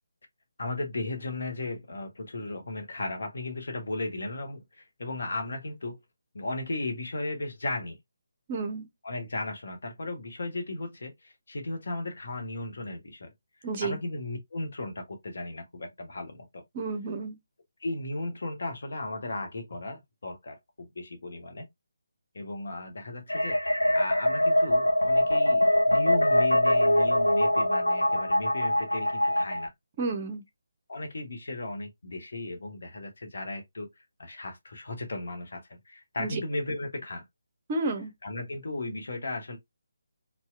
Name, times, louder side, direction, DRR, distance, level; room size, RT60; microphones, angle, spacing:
voice 1, 0.6-6.0 6.3-8.0 9.0-13.3 13.8-16.6 17.8-21.7 22.3-29.7 30.9-33.9 34.2-37.2 38.2-39.6, left 2 dB, 55° left, 0.8 m, -36 dB
voice 2, 8.5-8.9 13.6-14.0 16.7-17.4 30.0-30.4 36.2-36.4 37.7-38.1, right 3 dB, 30° right, 0.6 m, -31 dB
sound 1, 23.3-29.7, left 1 dB, 80° left, 0.4 m, -23 dB
2.7 x 2.0 x 2.3 m
figure-of-eight pair, 150°, 0 cm